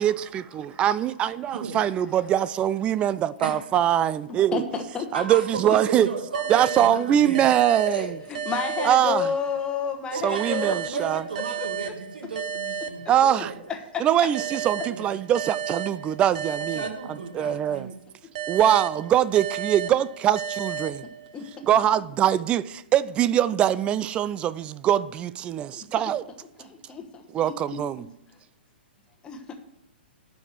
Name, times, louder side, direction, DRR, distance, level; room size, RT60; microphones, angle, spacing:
voice 1, 0.0-4.6 5.1-6.1 6.5-8.1 8.8-9.3 10.2-11.2 13.1-13.5 14.0-16.8 17.3-17.9 18.5-21.0 21.6-26.2 27.3-28.1, right 11 dB, 20° right, 0.4 m, -23 dB
voice 2, 3.4-3.8 5.1-7.4 7.9-8.1 8.8-8.9 9.2-9.3 10.1-13.6 14.4-15.1 16.7-17.9, right 4 dB, 60° right, 2.0 m, -34 dB
voice 3, 4.5-5.3 5.6-5.7 8.4-10.7 11.6-11.9 13.7-14.0 21.3-21.4 25.7-25.8 26.6-28.1 29.2-29.5, left 6 dB, 15° left, 1.2 m, -31 dB
sound 1, 6.3-9.7 10.4-13.7 14.3-17.7 18.4-21.7, right 7 dB, 45° right, 0.8 m, -34 dB
11.5 x 4.8 x 7.5 m
figure-of-eight pair, 115°, 6 cm